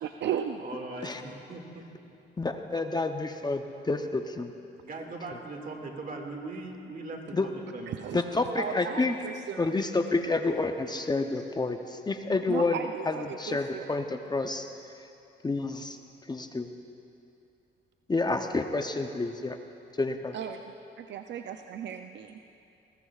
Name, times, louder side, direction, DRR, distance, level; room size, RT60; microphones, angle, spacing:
voice 1, 0.0-0.6 7.9-8.2 8.6-9.7 12.5-13.9 20.3-20.6 21.1-22.6, right 8 dB, 65° right, 6 dB, 0.5 m, -35 dB
voice 2, 0.6-1.8 4.8-8.1, right 2 dB, 45° right, 2 dB, 2.1 m, -40 dB
voice 3, 2.4-4.5 7.3-7.5 8.1-9.2 9.6-12.8 13.1-14.7 15.0-15.1 15.4-16.0 16.3-16.7 18.1-19.6 20.0-20.3, left 3 dB, 20° left, 6 dB, 0.7 m, -29 dB
20.0 x 20.0 x 2.4 m, 2.7 s
cardioid pair, 90°, 20 cm